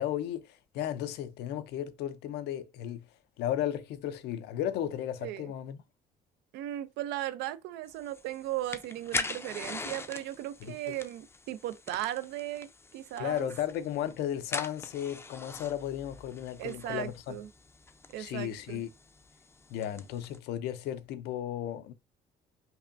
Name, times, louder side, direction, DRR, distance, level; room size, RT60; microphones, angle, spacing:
voice 1, 0.0-3.0 3.4-5.8 10.6-10.9 13.2-17.3 18.2-18.9 19.7-21.9, left 11 dB, 80° left, 0.5 m, -34 dB
voice 2, 5.2-5.5 6.5-12.7 12.9-13.5 16.6-17.5 18.1-18.8, right 14 dB, 85° right, 0.4 m, -37 dB
sound 1, 7.9-20.4, left 3 dB, 15° left, 0.4 m, -42 dB
5.4 x 2.2 x 2.5 m
cardioid pair, 110°, 17 cm